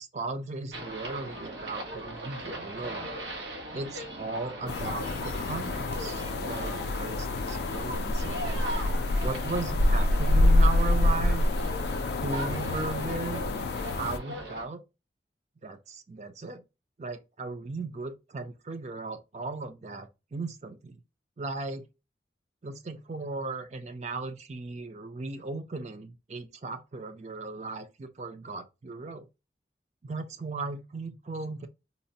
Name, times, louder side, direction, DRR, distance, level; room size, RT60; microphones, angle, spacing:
voice 1, 0.0-3.1 3.7-8.4 9.2-11.4 12.1-13.4 13.9-14.8 15.6-16.6 17.0-21.0 21.4-21.8 22.6-29.3 30.0-31.7, right 3 dB, 40° right, 0.5 m, -36 dB
sound 1, 0.7-14.6, right 1 dB, 90° right, 1.3 m, -39 dB
sound 2, 4.7-14.2, left 2 dB, 65° left, 0.3 m, -26 dB
4.1 x 2.1 x 2.7 m
head